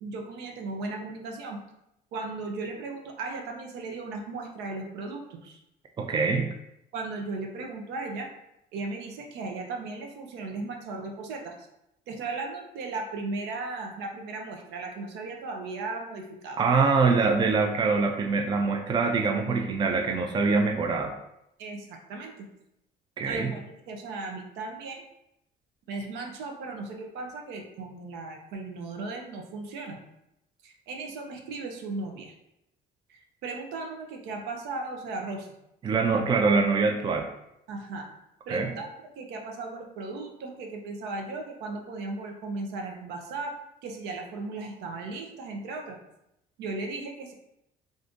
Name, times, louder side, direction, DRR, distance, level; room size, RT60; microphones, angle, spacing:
voice 1, 0.0-1.6 2.1-5.6 6.9-8.3 8.7-11.5 12.1-16.6 21.6-22.5 23.3-25.0 25.9-30.0 30.6-32.3 33.1-35.5 36.1-36.2 37.7-38.1 38.5-38.9 39.2-43.5 43.8-46.0 46.6-47.3, right 3 dB, 85° right, 2 dB, 0.6 m, -36 dB
voice 2, 6.0-6.5 16.6-21.1 23.2-23.5 35.8-37.3 38.5-38.7, right 4 dB, 25° right, 4 dB, 0.4 m, -24 dB
2.5 x 2.5 x 3.5 m, 0.82 s
cardioid pair, 110°, 17 cm